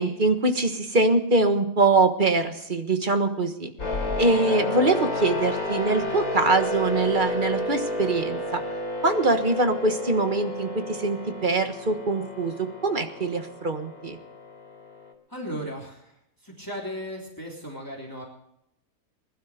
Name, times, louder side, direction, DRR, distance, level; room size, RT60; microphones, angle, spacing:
voice 1, 0.0-3.7 4.2-8.6 9.0-14.2, right 3 dB, 35° right, 7 dB, 1.5 m, -23 dB
sound 1, 3.8-15.1, left 2 dB, 80° left, 3.7 m, -31 dB
voice 2, 15.3-16.2 16.4-18.2, equal, 15° left, -2 dB, 3.6 m, -36 dB
21.0 x 12.0 x 5.1 m, 0.78 s
omnidirectional pair, 1.6 m